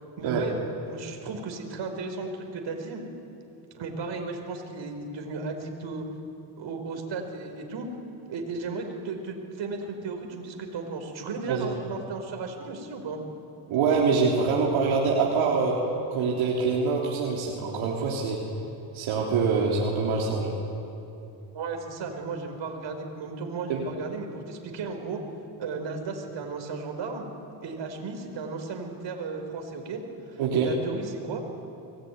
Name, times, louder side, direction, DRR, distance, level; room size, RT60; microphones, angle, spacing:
voice 1, 0.2-3.0 3.7-6.1 6.6-7.9 8.3-13.2 21.5-25.2 25.6-27.3 27.6-30.0 30.3-31.4, right 4 dB, 65° right, 4 dB, 4.9 m, -35 dB
voice 2, 13.7-15.7 16.1-18.4 18.9-20.6 23.7-23.8 30.4-30.7, right 5 dB, 85° right, -3 dB, 3.5 m, -25 dB
24.5 x 19.5 x 9.5 m, 2.9 s
cardioid pair, 80°, 47 cm